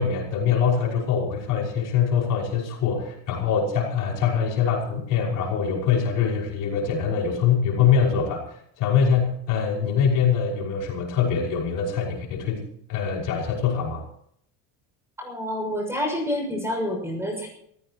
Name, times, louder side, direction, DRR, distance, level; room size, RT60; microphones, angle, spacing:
voice 1, 0.0-12.6 12.9-14.0, left 7 dB, 55° left, -1 dB, 5.8 m, -23 dB
voice 2, 15.2-17.5, left 1 dB, 5° right, 2 dB, 6.3 m, -28 dB
27.0 x 15.5 x 3.0 m, 0.69 s
cardioid pair, 165°, 37 cm